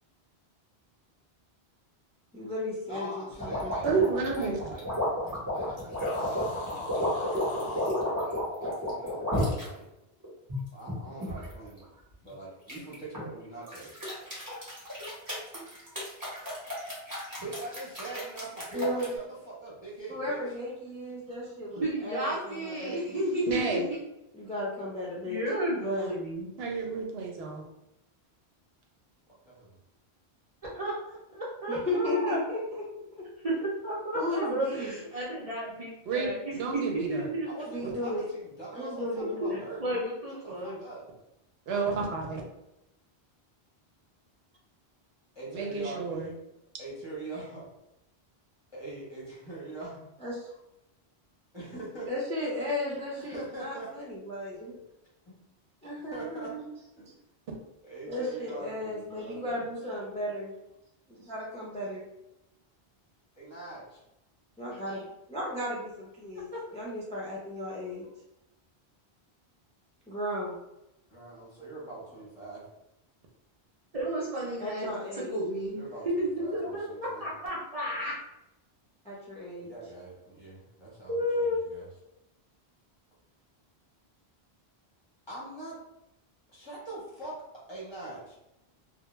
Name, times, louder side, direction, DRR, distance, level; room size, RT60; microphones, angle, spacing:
voice 1, 2.3-4.1 18.7-19.1 20.1-23.2 24.3-25.4 25.8-26.1 31.7-32.8 33.1-33.2 34.1-35.0 37.7-38.3 38.8-39.6 50.2-50.5 52.1-54.7 55.8-56.6 58.1-60.6 61.1-62.1 64.6-68.1 70.1-70.5 74.6-75.3 79.0-79.7, left 1 dB, 10° left, -6 dB, 0.4 m, -35 dB
voice 2, 2.9-3.8 4.3-9.8 10.7-11.8 12.2-13.9 17.4-19.1 19.4-20.4 29.4-29.7 37.4-39.9 40.4-41.0 45.3-46.3 46.8-47.7 48.7-50.0 51.5-52.1 53.2-53.9 55.3-55.4 56.1-56.5 57.0-57.1 57.8-59.6 63.4-64.0 71.1-72.6 75.8-77.2 79.6-81.9 85.3-85.8 86.5-87.3 87.7-88.4, right 2 dB, 30° left, -7 dB, 0.8 m, -43 dB
sound 1, 3.4-9.7 10.2-11.5 12.7-13.2 13.7-19.1, left 1 dB, 20° right, 0.9 m, -32 dB
voice 3, 3.8-4.6 23.5-23.8 26.6-27.6 36.1-37.3 37.8-37.9 41.7-42.4 45.5-46.3, right 4 dB, 75° right, 1 dB, 0.8 m, -30 dB
sound 2, 5.9-8.0, left 2 dB, 60° left, 0.6 m, -38 dB
voice 4, 21.8-24.0 25.2-26.6 30.7-32.4 33.4-33.5 33.8-36.8 37.1-37.5 39.5-40.8 73.9-75.8 76.2-78.1 81.1-81.8, equal, 45° right, -6 dB, 0.6 m, -32 dB
2.2 x 2.1 x 3.0 m, 0.88 s
omnidirectional pair, 1.1 m